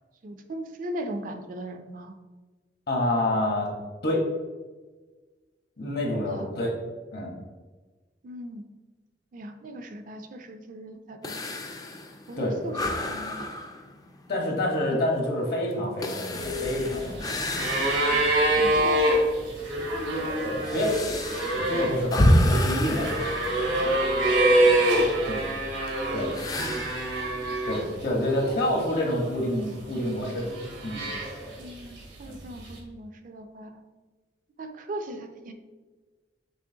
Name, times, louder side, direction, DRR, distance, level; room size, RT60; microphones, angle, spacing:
voice 1, 0.2-2.2 6.2-6.5 8.2-8.6 9.3-11.3 12.3-13.5 14.3-14.4 18.1-18.3 18.5-19.2 21.7-21.9 24.1-24.4 26.6-26.8 28.4-28.8 31.6-33.8 34.6-35.5, right 1 dB, 45° right, 7 dB, 0.4 m, -39 dB
voice 2, 2.9-3.7 4.0-4.2 5.8-6.7 7.1-7.3 12.4-12.5 14.3-17.3 18.5-18.6 20.4-20.9 21.5-23.3 25.2-25.4 26.1-26.3 27.6-30.5 30.8-31.0 32.3-32.4, left 1 dB, 60° left, 0 dB, 1.1 m, -27 dB
sound 1, 11.2-18.4 18.9-19.0 19.7-24.3 26.3-27.1, left 1 dB, 20° left, 0.3 m, -28 dB
sound 2, 16.4-28.0 28.3-29.2 30.0-31.7 32.7-32.8, right 1 dB, 90° right, 1.2 m, -26 dB
6.2 x 3.0 x 2.7 m, 1.3 s
head